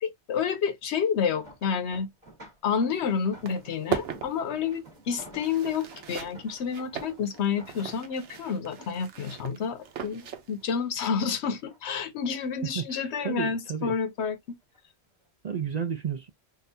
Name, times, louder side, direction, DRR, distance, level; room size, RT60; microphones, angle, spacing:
voice 1, 0.0-2.1 2.6-14.6, left 6 dB, 75° left, 1.0 m, -29 dB
sound 1, 1.1-10.7 11.1-12.0 12.4-13.7 14.5-14.8 15.2-15.3, right 1 dB, 35° right, 1.9 m, -52 dB
sound 2, 2.9-3.0 3.3-10.8, right 9 dB, 90° right, 1.1 m, -38 dB
voice 2, 12.8-14.0 15.4-16.3, right 7 dB, 60° right, 0.4 m, -32 dB
3.8 x 2.5 x 2.7 m
omnidirectional pair, 1.1 m